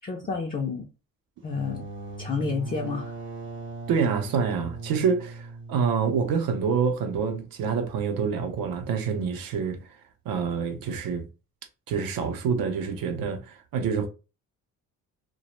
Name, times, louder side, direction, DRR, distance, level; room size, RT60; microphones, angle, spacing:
voice 1, 0.0-0.9 1.4-1.8 2.2-3.1, left 4 dB, 25° left, 0.4 m, -30 dB
sound 1, 1.4-6.9, right 3 dB, 35° right, 0.7 m, -39 dB
voice 2, 3.9-9.8 10.3-11.2 11.9-14.1, right 6 dB, 75° right, 0.6 m, -27 dB
2.2 x 2.1 x 2.9 m
cardioid pair, 90°, 35 cm